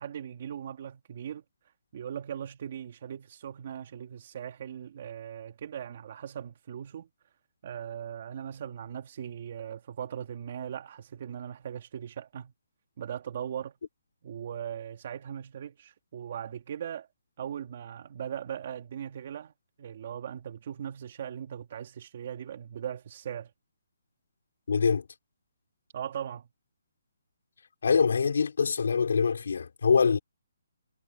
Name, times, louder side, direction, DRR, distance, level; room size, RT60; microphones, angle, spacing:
voice 1, 0.0-1.4 1.9-7.1 7.6-12.5 13.0-13.7 14.2-17.1 17.4-19.5 19.8-23.5 25.9-26.5, right 9 dB, 40° right, 2.6 m, -39 dB
voice 2, 24.7-25.0 27.8-30.2, left 5 dB, 65° left, 4.9 m, -24 dB
hypercardioid pair, 170°, 0 cm